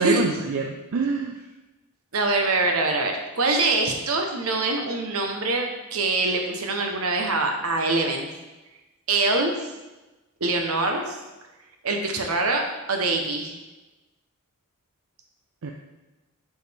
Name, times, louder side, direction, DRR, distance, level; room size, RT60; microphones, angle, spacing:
voice 1, 0.0-1.4 15.6-15.7, right 4 dB, 65° right, 2 dB, 0.5 m, -25 dB
voice 2, 2.1-8.3 9.1-9.7 10.4-11.2 11.8-12.6 12.9-13.5, right 3 dB, 80° right, 3 dB, 0.9 m, -24 dB
6.3 x 5.0 x 3.4 m, 1.1 s
head